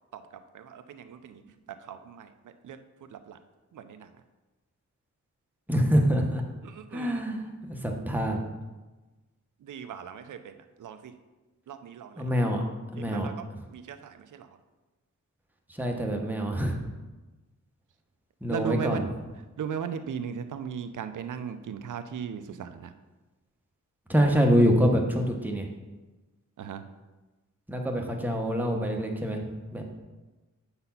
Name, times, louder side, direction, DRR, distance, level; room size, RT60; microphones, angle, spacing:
voice 1, 0.1-1.4 1.7-2.8 3.1-3.4 3.7-4.1 6.6-7.2 9.6-11.1 11.7-12.3 13.0-13.4 13.7-14.5 18.5-19.1 19.6-22.9 26.6-26.9, right 7 dB, 80° right, 9 dB, 0.6 m, -37 dB
voice 2, 5.7-6.4 6.9-8.4 12.2-12.6 12.9-13.3 15.8-16.8 18.4-19.0 24.1-25.7 27.7-29.4 29.7-30.0, equal, 5° right, 1 dB, 0.9 m, -25 dB
7.8 x 4.1 x 5.7 m, 1.2 s
wide cardioid pair, 150°, 30 cm